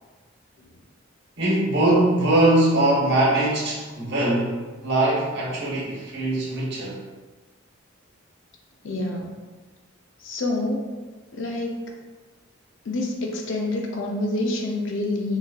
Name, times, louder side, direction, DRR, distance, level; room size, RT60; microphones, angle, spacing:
voice 1, 1.4-7.0, right 1 dB, 55° right, -6 dB, 1.1 m, -21 dB
voice 2, 8.8-9.4 10.2-10.9 11.3-11.8 12.8-15.4, left 2 dB, 65° left, 1 dB, 0.5 m, -27 dB
3.9 x 2.6 x 2.3 m, 1.3 s
head